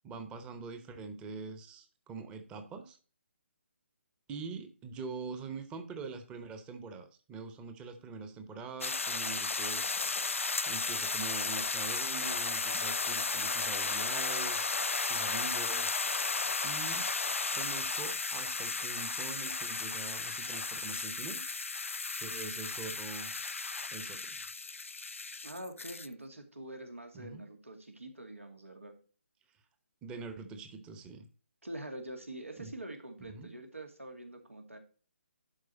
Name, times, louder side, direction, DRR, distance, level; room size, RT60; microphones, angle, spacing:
voice 1, 0.0-3.0 4.3-9.9 10.7-14.7 15.0-16.0 16.6-17.1 17.5-21.4 22.2-23.3 23.9-24.4 27.1-27.4 30.0-31.3 32.6-32.7 33.2-33.5, right 4 dB, 15° right, 8 dB, 0.9 m, -44 dB
sound 1, 8.8-26.1, left 4 dB, 80° left, 0.5 m, -34 dB
voice 2, 25.4-28.9 31.6-34.8, right 1 dB, 90° right, 4 dB, 2.3 m, -45 dB
11.5 x 4.8 x 4.1 m, 0.39 s
figure-of-eight pair, 140°, 7 cm